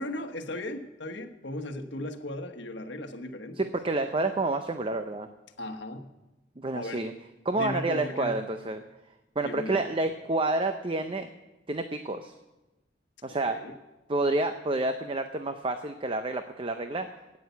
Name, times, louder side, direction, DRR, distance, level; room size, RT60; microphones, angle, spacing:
voice 1, 0.0-3.7 5.6-6.1 6.7-7.1 7.5-8.4 9.4-9.9 13.3-13.8, left 1 dB, 75° left, 5 dB, 1.3 m, -37 dB
voice 2, 3.6-5.3 6.6-7.1 7.5-8.8 9.4-11.3 11.7-12.3 13.2-13.6 14.1-17.1, right 2 dB, 30° right, 8 dB, 0.6 m, -29 dB
12.5 x 9.5 x 8.2 m, 1.1 s
head